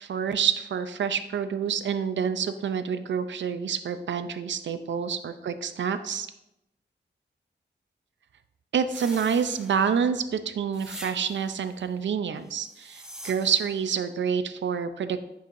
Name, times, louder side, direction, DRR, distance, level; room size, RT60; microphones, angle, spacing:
voice 1, 0.0-6.3 8.7-15.2, right 7 dB, 80° right, 10 dB, 0.5 m, -28 dB
sound 1, 8.9-10.1 10.7-11.6 12.6-13.8, right 1 dB, 5° right, 1.0 m, -44 dB
10.0 x 5.5 x 2.6 m, 0.88 s
wide cardioid pair, 130°, 19 cm